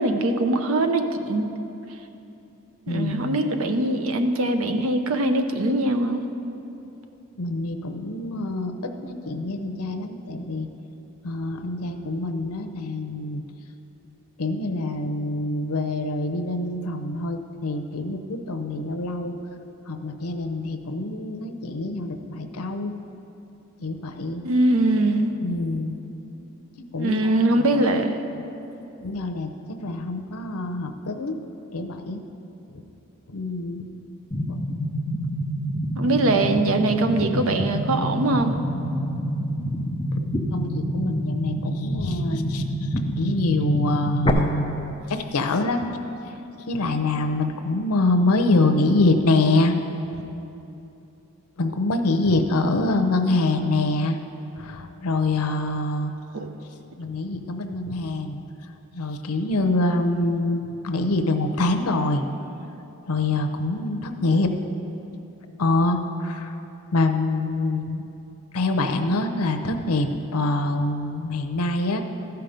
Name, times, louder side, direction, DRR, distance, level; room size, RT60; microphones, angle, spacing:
voice 1, 0.0-1.5 2.9-6.2 24.4-25.4 27.0-28.2 36.0-38.6 56.3-56.5, right 2 dB, 70° right, 7 dB, 0.6 m, -22 dB
voice 2, 2.9-3.5 7.4-10.7 11.2-13.4 14.4-19.4 19.9-22.9 23.8-24.4 25.4-26.0 26.9-27.7 29.0-29.5 29.8-31.4 31.7-32.2 32.7-32.8 33.3-33.8 40.1-42.9 43.2-45.9 46.7-49.7 51.6-54.2 54.6-56.1 57.0-58.4 58.9-62.2 63.1-64.5 65.6-66.5 66.9-68.1 68.5-70.1 70.3-72.0, left 2 dB, 90° left, 6 dB, 0.7 m, -25 dB
sound 1, 34.3-44.3, equal, 20° left, 0.5 m, -27 dB
14.0 x 5.8 x 5.1 m, 2.9 s
head